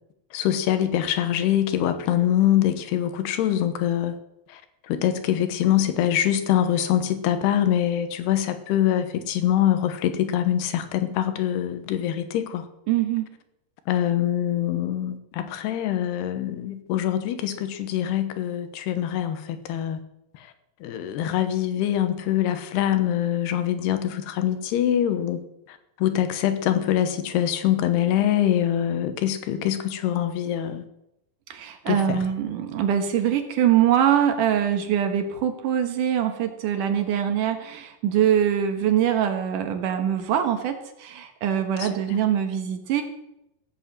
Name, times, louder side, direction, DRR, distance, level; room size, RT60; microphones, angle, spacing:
voice 1, 0.3-4.1 4.9-12.6 13.9-20.0 20.8-25.4 26.0-30.8 31.9-32.2 41.8-42.2, left 11 dB, 85° left, 10 dB, 3.2 m, -24 dB
voice 2, 12.9-13.3 31.5-43.0, right 9 dB, 60° right, 6 dB, 2.6 m, -23 dB
16.0 x 8.0 x 7.6 m, 0.85 s
omnidirectional pair, 4.6 m